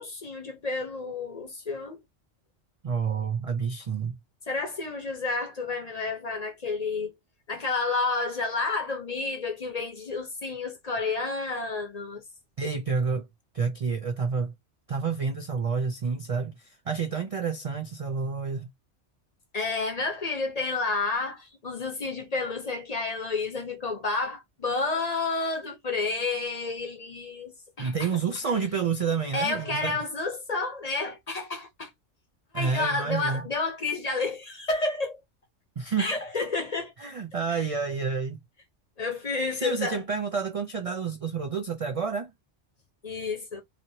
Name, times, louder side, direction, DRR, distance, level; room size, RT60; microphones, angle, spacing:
voice 1, 0.0-2.0 4.5-7.1 7.5-12.2 19.5-28.1 28.5-28.6 29.3-31.9 32.5-35.2 36.0-36.9 37.5-37.6 39.0-40.0 43.0-43.6, left 3 dB, 40° left, 0.8 m, -30 dB
voice 2, 2.8-4.2 12.6-13.3 13.5-14.5 14.9-18.7 27.8-30.0 32.5-33.4 35.8-36.1 37.0-38.4 39.5-42.3, right 5 dB, 50° right, 0.4 m, -29 dB
2.9 x 2.8 x 2.7 m
omnidirectional pair, 1.2 m